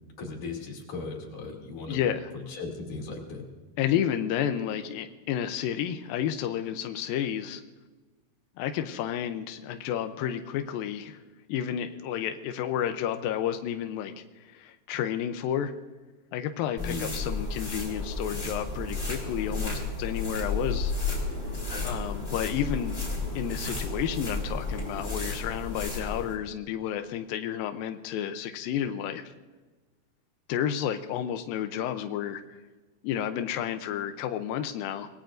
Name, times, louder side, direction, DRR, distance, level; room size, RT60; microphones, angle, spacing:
voice 1, 0.2-2.0 2.3-3.4 16.8-17.1 22.1-22.4, left 3 dB, 50° left, 0 dB, 4.0 m, -37 dB
voice 2, 1.9-2.3 3.8-7.6 8.6-11.2 11.5-15.7 16.3-20.9 21.8-23.0 23.4-29.2 30.5-32.4 33.0-35.1, left 10 dB, 85° left, 7 dB, 2.1 m, -31 dB
sound 1, 16.8-26.3, left 3 dB, 15° left, 3.3 m, -32 dB
26.0 x 19.5 x 2.6 m, 1.2 s
omnidirectional pair, 4.9 m